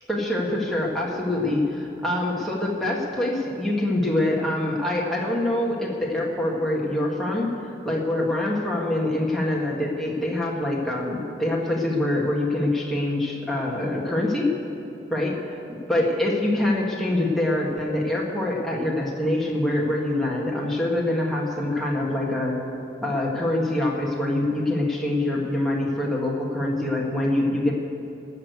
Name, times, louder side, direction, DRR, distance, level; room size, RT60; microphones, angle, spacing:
voice 1, 0.1-7.5 7.8-14.5 15.1-15.3 15.9-22.6 23.0-27.7, left 1 dB, ahead, -4 dB, 1.7 m, -25 dB
19.0 x 6.6 x 8.2 m, 2.7 s
head